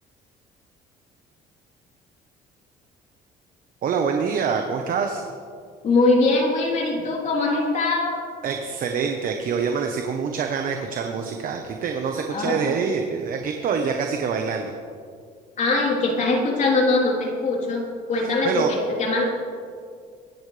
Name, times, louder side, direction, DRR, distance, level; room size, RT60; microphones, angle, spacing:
voice 1, 3.8-5.2 8.4-14.7 18.2-18.7, right 6 dB, 55° right, 4 dB, 1.2 m, -26 dB
voice 2, 5.8-8.2 12.3-12.8 15.6-19.2, left 3 dB, 45° left, -2 dB, 3.8 m, -22 dB
23.0 x 10.5 x 3.4 m, 2.2 s
cardioid pair, 110°, 17 cm